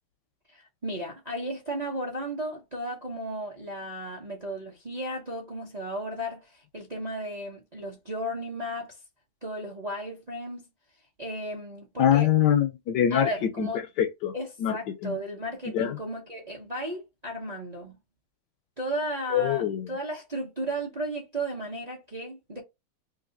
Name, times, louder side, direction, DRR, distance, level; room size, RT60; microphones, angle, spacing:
voice 1, 0.5-9.0 9.4-10.6 11.2-12.3 13.1-13.8 14.3-17.9 18.8-22.6, equal, 35° right, 0.6 m, -34 dB
voice 2, 12.0-13.3 13.6-13.7 14.0-14.3 14.6-14.8 15.0-15.2 15.7-16.0 19.3-19.9, left 10 dB, 70° left, 1.0 m, -23 dB
3.2 x 2.6 x 3.9 m
omnidirectional pair, 2.2 m